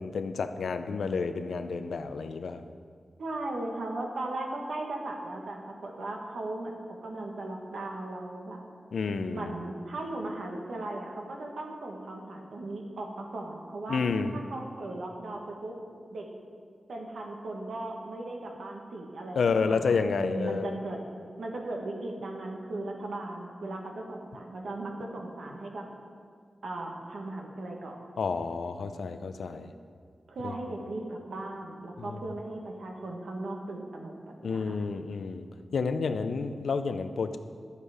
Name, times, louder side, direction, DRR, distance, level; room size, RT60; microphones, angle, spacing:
voice 1, 0.0-2.6 8.9-9.5 13.9-14.4 19.4-20.8 28.2-29.7 30.4-30.5 32.0-32.2 34.4-35.4 35.7-37.4, left 4 dB, 90° left, 9 dB, 0.5 m, -30 dB
voice 2, 3.2-8.6 9.3-14.0 14.3-15.7 16.1-16.2 16.9-21.0 21.4-25.8 26.6-28.0 30.3-34.8, right 2 dB, 85° right, 1 dB, 1.6 m, -37 dB
11.5 x 8.2 x 5.0 m, 2.1 s
wide cardioid pair, 90°, 0 cm